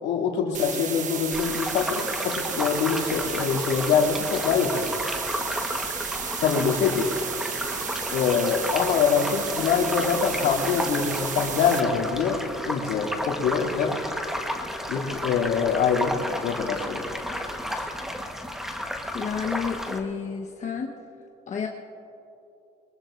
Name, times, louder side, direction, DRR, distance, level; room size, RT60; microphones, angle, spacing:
voice 1, 0.0-4.8 6.4-7.1 8.1-12.4 12.7-14.0 14.9-16.2 16.4-17.0 17.7-17.9, left 6 dB, 90° left, -2 dB, 2.8 m, -24 dB
sound 1, 0.5-11.8, right 7 dB, 50° right, 1.2 m, -33 dB
sound 2, 1.3-20.0, equal, ahead, 1.3 m, -32 dB
voice 2, 19.1-20.9 21.5-21.7, left 6 dB, 45° left, 1 dB, 1.2 m, -30 dB
24.0 x 21.5 x 2.6 m, 2.9 s
cardioid pair, 110°, 17 cm